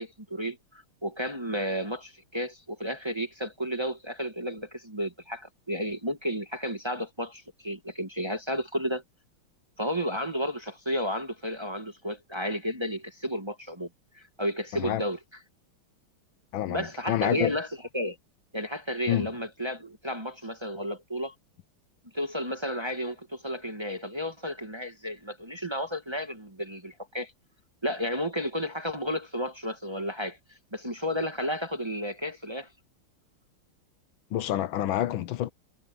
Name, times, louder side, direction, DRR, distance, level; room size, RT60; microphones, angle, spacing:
voice 1, 0.0-9.0 9.8-13.9 14.1-15.2 16.7-17.7 17.9-18.2 18.5-21.3 22.1-27.3 27.8-30.4 30.7-32.7, equal, 15° right, 1.4 m, -32 dB
voice 2, 16.5-17.5 19.1-19.3 34.3-35.5, left 12 dB, 80° left, 1.5 m, -28 dB
omnidirectional pair, 2.2 m